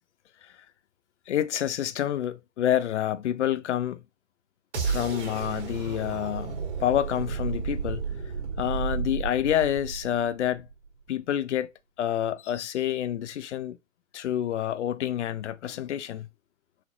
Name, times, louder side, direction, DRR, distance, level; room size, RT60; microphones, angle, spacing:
voice 1, 1.3-4.0 4.8-8.0 8.6-10.7 11.1-11.7 12.0-13.8 14.1-16.3, left 11 dB, 55° left, 0.5 m, -28 dB
sound 1, 4.7-10.7, right 5 dB, 55° right, 1.5 m, -32 dB
4.2 x 2.7 x 2.3 m
hypercardioid pair, 130°, 41 cm